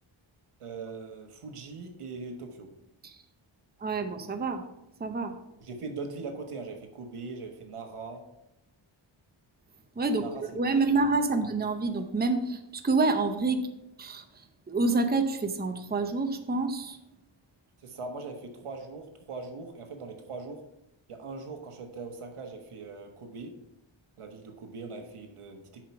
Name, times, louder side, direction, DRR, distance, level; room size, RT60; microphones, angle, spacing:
voice 1, 0.6-2.7 5.6-8.3 10.1-10.5 10.8-11.1 11.3-11.4 17.8-20.6 21.1-23.6 24.2-25.8, right 4 dB, 90° right, 4 dB, 1.3 m, -41 dB
voice 2, 3.8-4.6 5.0-5.3 10.0-10.2 10.5-13.6 14.0-14.2 14.7-17.0, right 3 dB, 20° right, 7 dB, 0.7 m, -27 dB
7.3 x 4.9 x 5.8 m, 0.87 s
wide cardioid pair, 115°, 50 cm